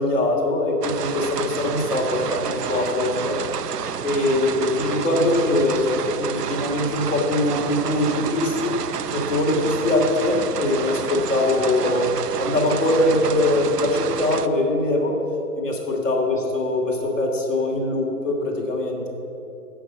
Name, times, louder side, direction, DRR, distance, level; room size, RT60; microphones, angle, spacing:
voice 1, 0.0-3.4 4.0-8.8 9.1-12.1 12.4-15.1 15.5-19.1, left 1 dB, 50° left, -1 dB, 2.9 m, -22 dB
sound 1, 0.8-14.5, right 8 dB, 80° right, 0.8 m, -30 dB
15.0 x 6.3 x 8.1 m, 2.9 s
hypercardioid pair, 175°, 47 cm